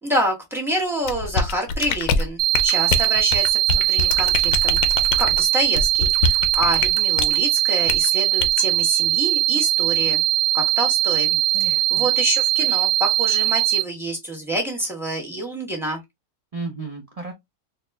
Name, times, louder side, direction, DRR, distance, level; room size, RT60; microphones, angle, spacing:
voice 1, 0.0-10.2 10.5-11.3 11.6-16.0, equal, ahead, 1.2 m, -27 dB
sound 1, 1.1-7.4 7.9-8.1 8.4-8.6, left 4 dB, 70° left, 0.9 m, -24 dB
sound 2, 2.4-13.8, right 14 dB, 85° right, 1.1 m, -20 dB
voice 2, 11.3-12.1 16.5-17.3, right 3 dB, 65° right, 0.3 m, -34 dB
4.2 x 2.8 x 2.2 m
omnidirectional pair, 1.6 m